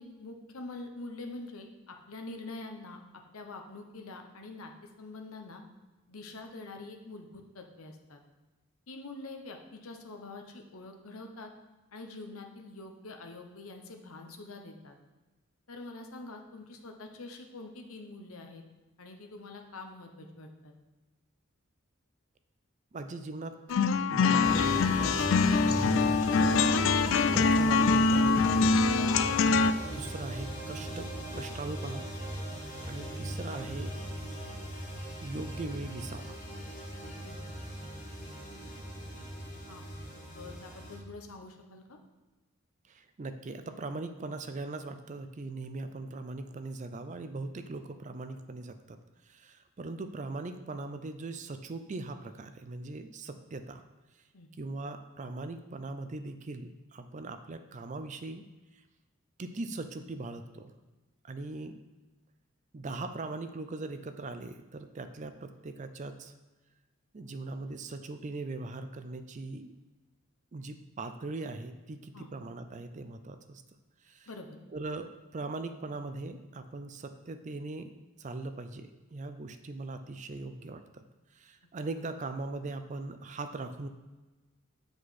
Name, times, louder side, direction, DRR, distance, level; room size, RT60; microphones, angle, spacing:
voice 1, 0.0-3.0 3.3-5.6 6.1-8.2 8.9-11.5 11.9-14.9 15.7-18.6 19.0-20.7 32.5-32.6 37.1-37.4 39.7-39.8 40.1-42.0 54.3-54.5 72.1-72.3 74.3-74.6, left 2 dB, 80° left, 3 dB, 1.0 m, -45 dB
voice 2, 22.9-23.6 24.1-26.2 27.3-28.7 29.8-32.1 32.8-34.0 35.2-36.4 38.6-38.7 42.9-49.0 49.3-53.8 54.6-58.5 59.4-60.7 61.2-61.8 62.7-66.3 67.1-69.7 70.5-73.6 74.0-74.3 74.7-77.9 78.2-81.0 81.3-83.9, right 3 dB, 35° right, 9 dB, 0.4 m, -40 dB
sound 1, 23.7-29.7, left 4 dB, 60° left, 0.3 m, -24 dB
sound 2, 24.4-41.0, equal, 35° left, 1.6 m, -38 dB
8.2 x 5.0 x 4.2 m, 1.2 s
head